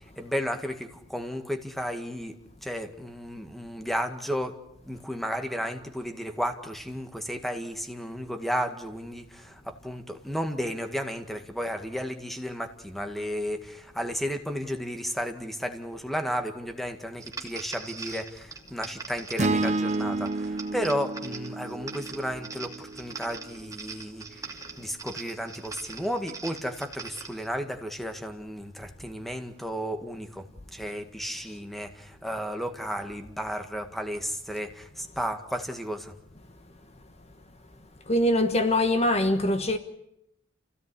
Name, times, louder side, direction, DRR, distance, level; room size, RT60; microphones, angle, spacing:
voice 1, 0.2-2.4 2.6-4.5 4.9-24.2 24.8-30.4 30.7-36.1, equal, ahead, 1.9 m, -33 dB
sound 1, 17.2-27.5, right 4 dB, 15° right, 2.6 m, -42 dB
sound 2, 19.4-23.7, right 2 dB, 35° right, 0.9 m, -30 dB
voice 2, 38.1-39.8, left 1 dB, 30° left, 1.3 m, -23 dB
28.5 x 16.5 x 9.9 m
head